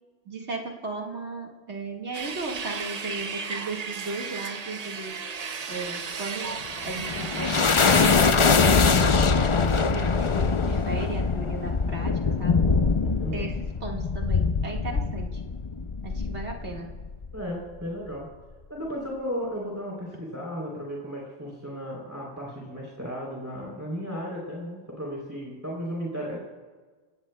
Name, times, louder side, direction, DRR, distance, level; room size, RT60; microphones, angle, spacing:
voice 1, 0.3-5.1 5.7-6.6 6.8-12.6 13.3-13.5 13.8-15.4 16.0-16.9, right 3 dB, 80° right, 0 dB, 2.1 m, -36 dB
sound 1, 2.1-8.3, right 5 dB, 40° right, 0.7 m, -34 dB
sound 2, 6.6-17.4, left 4 dB, 35° left, 0.5 m, -23 dB
voice 2, 13.0-13.6 17.3-18.3 18.7-26.4, equal, 15° right, -4 dB, 3.3 m, -35 dB
27.5 x 18.0 x 2.3 m, 1.4 s
omnidirectional pair, 1.1 m